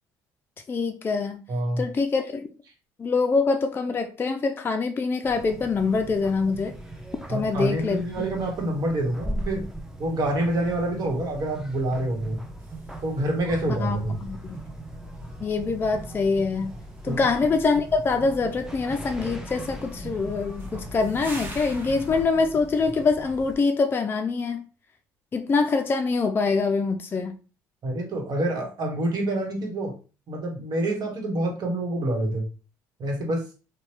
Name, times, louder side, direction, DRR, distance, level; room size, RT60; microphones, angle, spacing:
voice 1, 0.7-1.4 1.8-2.5 3.0-6.7 7.3-8.3 13.8-14.6 15.4-16.7 17.0-24.6 25.3-27.3, left 4 dB, 25° left, 0.4 m, -24 dB
voice 2, 1.5-1.8 7.3-9.7 10.0-12.4 13.0-14.2 17.1-17.3 27.8-29.9 30.3-32.5 33.0-33.4, right 1 dB, 55° right, 1.2 m, -27 dB
sound 1, 5.2-23.6, right 1 dB, 5° right, 0.7 m, -39 dB
sound 2, 12.4-22.2, left 1 dB, 25° right, 1.0 m, -43 dB
2.8 x 2.2 x 3.0 m
supercardioid pair, 75°, 8 cm